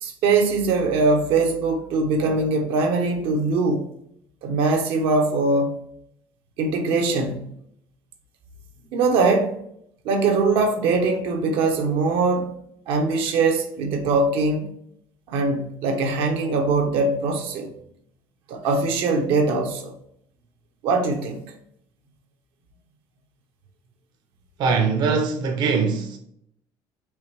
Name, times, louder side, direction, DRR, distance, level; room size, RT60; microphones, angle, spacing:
voice 1, 0.0-3.9 4.4-5.8 6.6-7.5 8.9-9.6 10.0-12.5 12.9-14.7 15.3-17.7 18.5-19.9 20.8-21.4, right 3 dB, 80° right, 0.8 m, -22 dB
voice 2, 24.6-26.2, right 5 dB, 55° right, 0.6 m, -22 dB
4.7 x 3.2 x 3.3 m
cardioid pair, 140°, 9 cm